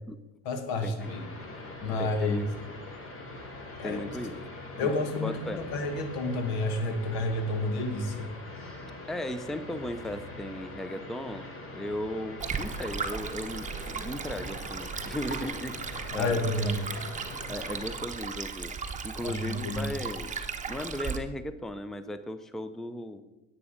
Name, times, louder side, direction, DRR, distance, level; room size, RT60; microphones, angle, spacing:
voice 1, 0.5-1.3 1.8-2.4 3.8-4.0 4.8-8.3 16.1-16.8 19.2-19.9, left 2 dB, 85° left, 7 dB, 1.7 m, -30 dB
sound 1, 1.0-18.0, left 2 dB, 40° left, 2.4 m, -43 dB
voice 2, 2.0-2.5 3.8-4.4 4.8-5.6 9.1-11.5 11.7-16.7 17.5-18.7 19.0-20.3 20.7-23.2, left 1 dB, ahead, 11 dB, 0.6 m, -36 dB
Stream, 12.4-21.2, right 5 dB, 20° right, 1.0 m, -36 dB
9.7 x 8.4 x 5.0 m, 1.1 s
supercardioid pair, 100°, 35 cm